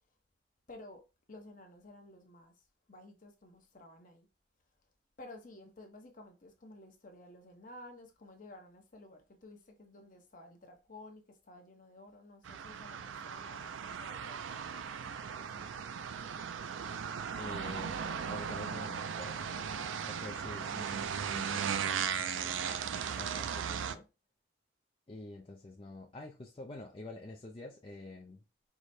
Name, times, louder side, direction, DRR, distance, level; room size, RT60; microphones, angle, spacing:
voice 1, 0.7-1.0 1.3-2.5 2.9-4.3 5.2-14.8 15.3-15.8, left 2 dB, 45° left, 0.9 m, -53 dB
sound 1, 12.4-23.9, right 7 dB, 85° right, 0.4 m, -37 dB
voice 2, 17.4-19.8 20.1-22.9 23.1-24.1 25.1-28.4, left 2 dB, 30° left, 0.4 m, -47 dB
4.8 x 2.1 x 4.1 m
head